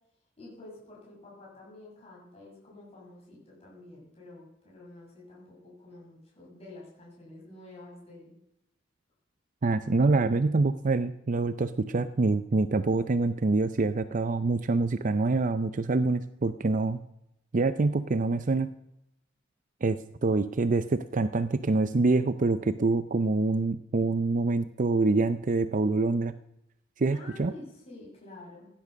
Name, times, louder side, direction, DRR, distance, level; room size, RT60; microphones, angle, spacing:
voice 1, 0.4-8.4 27.1-28.7, left 2 dB, 35° left, -4 dB, 6.8 m, -49 dB
voice 2, 9.6-17.0 17.5-18.7 19.8-26.3 27.0-27.5, right 3 dB, 40° right, 12 dB, 0.5 m, -26 dB
16.0 x 10.5 x 6.3 m, 0.82 s
head